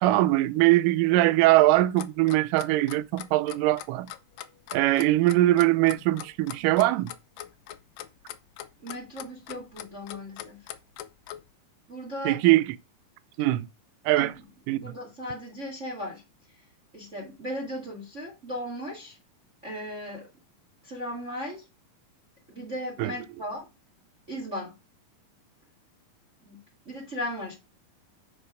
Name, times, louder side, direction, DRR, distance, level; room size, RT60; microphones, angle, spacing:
voice 1, 0.0-4.1 4.7-7.1 12.3-12.6 13.4-13.7 14.1-14.3 14.7-14.9 23.0-23.1, right 17 dB, 80° right, 2.0 m, -22 dB
Clock, 1.7-11.4, left 13 dB, 80° left, 2.1 m, -41 dB
voice 2, 8.8-10.7 11.9-12.4 14.1-14.3 14.7-16.2 16.9-19.2 19.6-20.3 20.8-21.7 22.5-23.7 24.3-24.7 26.4-26.6 26.8-27.5, equal, 25° right, 1.7 m, -36 dB
9.7 x 4.7 x 5.0 m
omnidirectional pair, 4.1 m